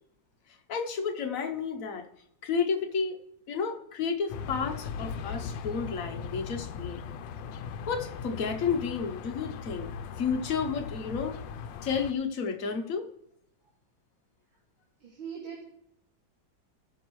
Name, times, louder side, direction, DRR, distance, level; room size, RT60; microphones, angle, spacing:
voice 1, 0.7-2.0 2.4-3.2 3.5-7.0 7.9-9.9 10.2-11.4 11.8-13.1, left 5 dB, 55° left, 5 dB, 1.0 m, -31 dB
sound 1, 4.3-12.1, left 6 dB, 75° left, 1.3 m, -39 dB
voice 2, 15.0-15.7, right 7 dB, 80° right, -2 dB, 2.4 m, -40 dB
18.0 x 6.2 x 3.1 m, 0.73 s
omnidirectional pair, 2.2 m